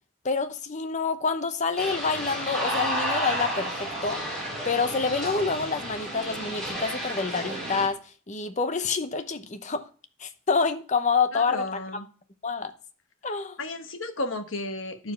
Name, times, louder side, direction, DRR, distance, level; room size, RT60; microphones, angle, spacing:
voice 1, 0.2-4.2 4.6-8.0 8.3-9.8 10.2-11.8 12.4-12.7 13.2-13.6, left 4 dB, 35° left, 0.8 m, -27 dB
sound 1, 1.8-7.9, equal, ahead, 3.9 m, -31 dB
voice 2, 11.3-12.0 13.6-15.1, left 2 dB, 65° left, 1.2 m, -33 dB
10.5 x 4.9 x 5.7 m
head